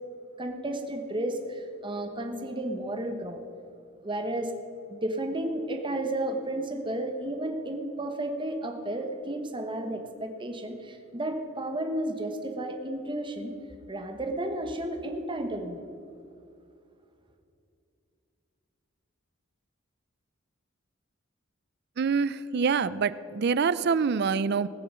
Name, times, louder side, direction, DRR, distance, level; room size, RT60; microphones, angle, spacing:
voice 1, 0.4-3.4 4.0-4.5 4.9-13.5 13.9-15.9, right 1 dB, 25° right, 5 dB, 1.1 m, -32 dB
voice 2, 22.0-24.7, right 5 dB, 55° right, 17 dB, 0.4 m, -26 dB
19.5 x 6.9 x 6.2 m, 2.6 s
head